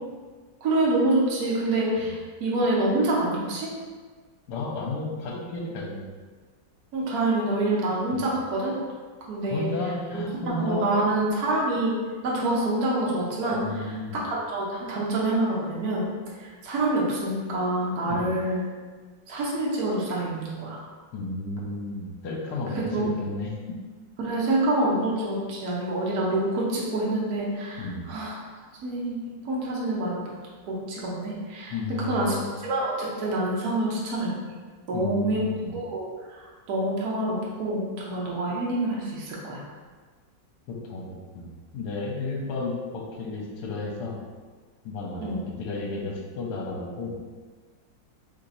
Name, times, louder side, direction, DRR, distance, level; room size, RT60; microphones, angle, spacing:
voice 1, 0.6-3.7 6.9-8.8 9.3-9.7 10.1-11.9 12.2-13.6 14.1-16.1 16.4-18.6 19.3-20.8 22.9-23.1 24.2-28.4 28.8-29.2 29.4-30.3 30.7-32.3 32.6-34.3 34.9-35.4 35.7-39.6 45.2-45.4, right 2 dB, 60° right, -5 dB, 1.3 m, -26 dB
voice 2, 4.5-6.1 8.1-8.3 9.5-11.0 13.5-14.2 18.1-18.3 21.1-23.8 27.8-28.1 31.7-32.5 34.9-35.8 40.7-41.0 41.3-44.2 44.8-47.2, left 2 dB, 70° left, -2 dB, 1.3 m, -33 dB
3.3 x 2.9 x 3.9 m, 1.5 s
omnidirectional pair, 2.0 m